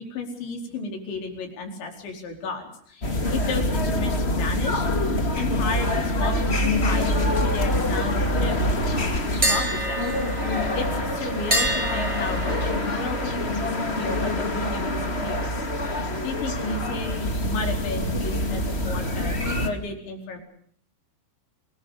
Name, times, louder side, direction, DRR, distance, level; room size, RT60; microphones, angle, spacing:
voice 1, 0.0-4.8 5.4-10.1 10.5-15.6 16.0-17.1 17.4-20.4, left 3 dB, 85° left, 3 dB, 6.9 m, -33 dB
sound 1, 3.0-19.7, left 1 dB, 25° left, 1.5 m, -25 dB
sound 2, 9.4-15.3 15.6-15.9 19.4-19.7, right 1 dB, 5° right, 7.6 m, -30 dB
26.0 x 21.5 x 6.7 m, 0.62 s
omnidirectional pair, 5.1 m